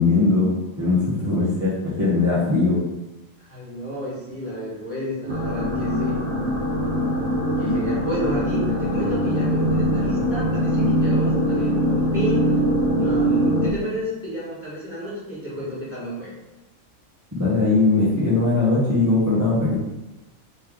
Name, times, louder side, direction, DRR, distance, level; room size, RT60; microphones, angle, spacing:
voice 1, 0.0-2.8 17.4-19.7, left 3 dB, 15° right, -10 dB, 0.7 m, -20 dB
voice 2, 3.4-6.2 7.6-12.5 13.0-16.3, equal, 10° left, -9 dB, 1.4 m, -31 dB
sound 1, 5.3-13.7, equal, 50° right, 0.7 m, -22 dB
3.1 x 3.1 x 3.7 m, 1.0 s
omnidirectional pair, 1.4 m